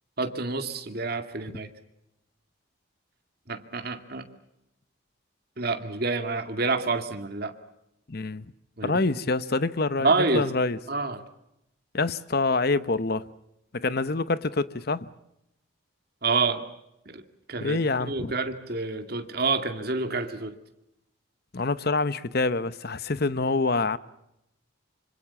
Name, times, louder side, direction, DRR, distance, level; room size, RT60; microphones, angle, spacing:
voice 1, 0.2-1.7 3.5-4.3 5.6-7.5 8.8-9.0 10.0-10.5 10.9-11.2 16.2-16.6 17.1-17.2 17.5-17.8 18.1-20.5, right 3 dB, 50° right, 2.2 m, -28 dB
voice 2, 8.1-8.5 8.8-10.8 11.9-13.3 13.7-15.1 17.6-18.3 21.5-24.0, left 3 dB, 50° left, 0.9 m, -26 dB
26.0 x 25.5 x 7.1 m
head